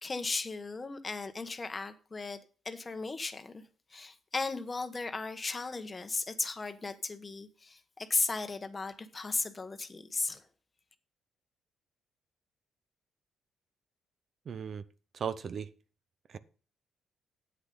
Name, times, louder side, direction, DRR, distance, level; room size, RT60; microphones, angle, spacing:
voice 1, 0.0-3.6 3.9-10.4, left 3 dB, 30° left, 1.2 m, -36 dB
voice 2, 14.5-14.8 15.1-15.7 16.3-16.4, right 7 dB, 50° right, 0.7 m, -36 dB
9.8 x 8.2 x 3.9 m
cardioid pair, 90°, 0 cm